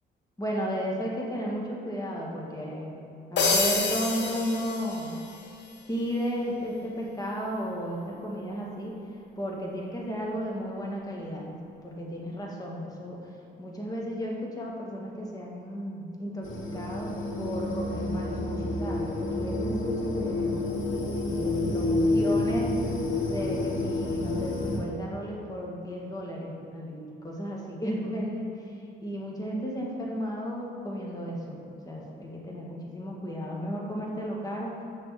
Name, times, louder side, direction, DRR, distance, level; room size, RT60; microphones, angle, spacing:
voice 1, 0.4-2.9 3.3-5.2 5.9-9.0 9.4-11.6 11.8-13.2 13.6-17.1 17.4-20.6 21.3-22.7 23.3-28.5 29.0-31.6 31.9-34.8, equal, 20° left, -3 dB, 2.2 m, -34 dB
sound 1, 3.4-5.4, left 3 dB, 60° left, 1.6 m, -28 dB
sound 2, 16.4-24.8, left 2 dB, 80° left, 1.9 m, -29 dB
6.6 x 6.5 x 7.5 m, 2.7 s
cardioid pair, 90°, 20 cm